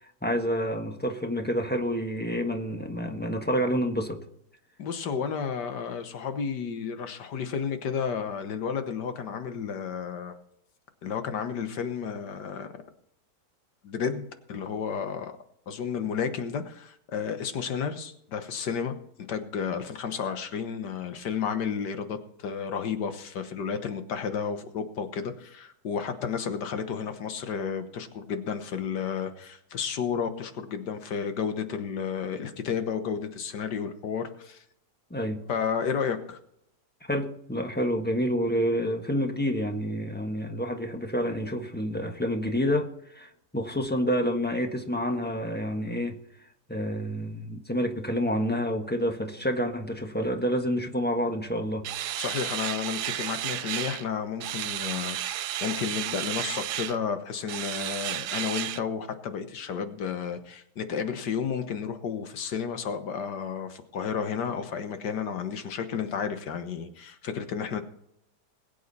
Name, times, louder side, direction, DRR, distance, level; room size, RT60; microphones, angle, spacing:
voice 1, 0.0-4.2 35.1-35.4 37.1-46.2 46.7-51.9, equal, 5° left, 4 dB, 1.1 m, -28 dB
voice 2, 4.8-10.4 11.0-12.7 13.8-15.4 15.7-19.0 19.3-34.6 35.5-36.4 52.2-67.8, left 6 dB, 80° left, 8 dB, 1.8 m, -32 dB
sound 1, 51.8-54.1 54.4-57.0 57.5-58.8, right 12 dB, 75° right, 1.2 m, -32 dB
21.0 x 8.4 x 4.1 m, 0.73 s
omnidirectional pair, 1.8 m